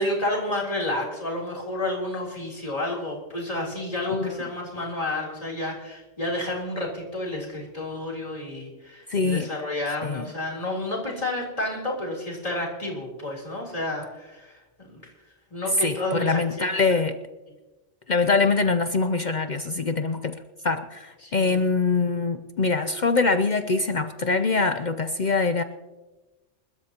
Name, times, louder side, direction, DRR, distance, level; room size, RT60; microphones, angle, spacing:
voice 1, 0.0-15.0 15.5-17.0 21.2-21.6, left 1 dB, 30° left, -2 dB, 3.6 m, -30 dB
voice 2, 9.1-9.5 10.0-10.3 15.8-17.2 18.1-20.4 20.6-25.6, left 4 dB, 50° left, 9 dB, 0.6 m, -24 dB
27.0 x 13.0 x 2.9 m, 1.1 s
omnidirectional pair, 1.2 m